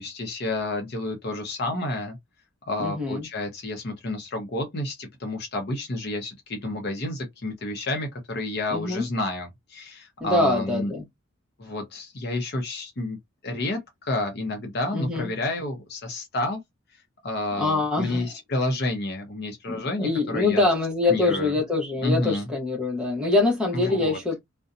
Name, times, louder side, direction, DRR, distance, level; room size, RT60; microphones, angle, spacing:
voice 1, 0.0-2.2 2.7-10.9 11.6-13.2 13.4-16.6 17.2-20.7 21.1-21.5 22.0-22.5 23.7-24.2, left 2 dB, 50° left, 0.7 m, -30 dB
voice 2, 2.8-3.3 8.7-9.0 10.2-11.0 14.9-15.3 17.6-18.3 20.0-24.4, left 3 dB, 5° right, 0.9 m, -24 dB
2.6 x 2.1 x 2.5 m
head